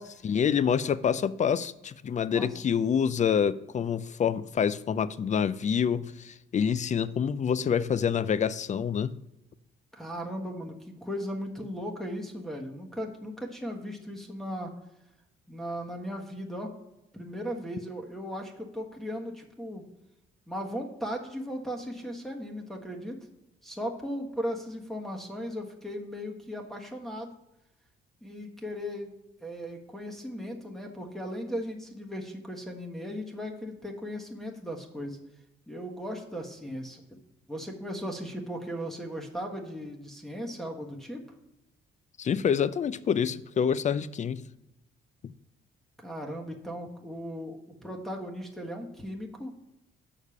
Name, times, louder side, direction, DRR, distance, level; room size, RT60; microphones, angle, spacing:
voice 1, 0.2-9.1 42.2-44.4, left 7 dB, 35° left, 0.5 m, -27 dB
voice 2, 9.9-14.7 15.5-16.7 17.1-19.8 20.5-23.2 23.6-27.3 28.2-29.1 29.4-35.2 35.7-37.0 37.5-41.2 46.0-49.5, equal, ahead, 1.4 m, -37 dB
6.5 x 5.0 x 7.0 m
cardioid pair, 90°, 20 cm